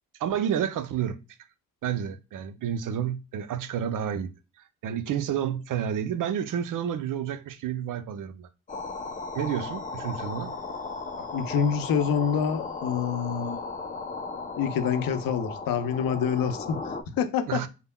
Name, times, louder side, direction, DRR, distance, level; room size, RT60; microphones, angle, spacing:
voice 1, 0.2-1.2 1.8-4.3 4.8-8.5 9.3-10.6 17.5-17.7, right 9 dB, 60° right, 0.5 m, -30 dB
sound 1, 8.7-17.0, left 3 dB, 25° left, 0.5 m, -36 dB
voice 2, 11.3-13.6 14.6-17.6, left 7 dB, 70° left, 0.6 m, -27 dB
3.3 x 2.1 x 2.2 m
supercardioid pair, 45°, 36 cm